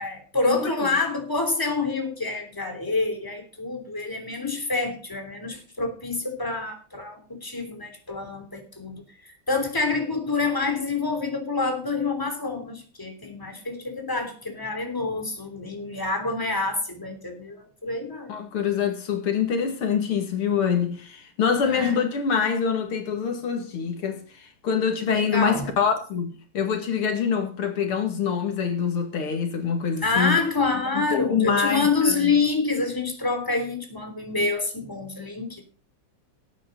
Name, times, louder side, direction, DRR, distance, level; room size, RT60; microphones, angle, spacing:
voice 1, 0.0-18.3 21.6-21.9 25.1-25.7 30.0-35.6, left 3 dB, 10° left, 3.2 m, -27 dB
voice 2, 18.3-30.4 30.9-32.3, left 6 dB, 80° left, 3.0 m, -25 dB
18.5 x 9.2 x 3.9 m
omnidirectional pair, 2.3 m